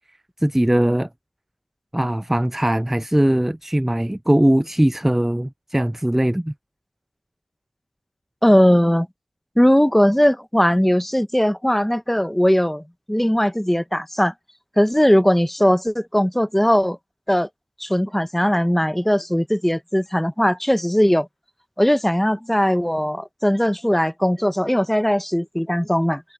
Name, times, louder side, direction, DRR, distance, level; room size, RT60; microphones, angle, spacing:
voice 1, 0.4-1.1 1.9-6.5, right 1 dB, 10° right, 0.3 m, -20 dB
voice 2, 8.4-9.1 9.6-14.3 14.8-17.0 17.3-17.5 17.8-21.3 21.8-26.2, equal, 5° left, 1.3 m, -19 dB
cardioid pair, 40°, 3 cm